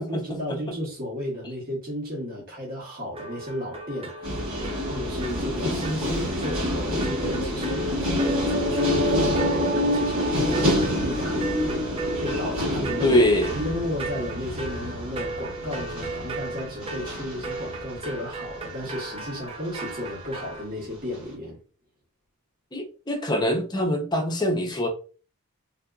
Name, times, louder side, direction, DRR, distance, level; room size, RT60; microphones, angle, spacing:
voice 1, 0.0-11.9 12.2-13.2 13.5-21.6, left 1 dB, 40° right, 1.1 m, -34 dB
sound 1, 3.1-20.6, right 3 dB, 25° right, 0.5 m, -37 dB
sound 2, 4.2-19.2 19.9-20.2, left 1 dB, 60° right, 1.4 m, -28 dB
sound 3, 8.5-13.3, equal, 85° right, 1.5 m, -32 dB
voice 2, 13.0-13.5 22.7-24.9, equal, 20° left, 0.6 m, -23 dB
3.6 x 2.6 x 2.3 m
head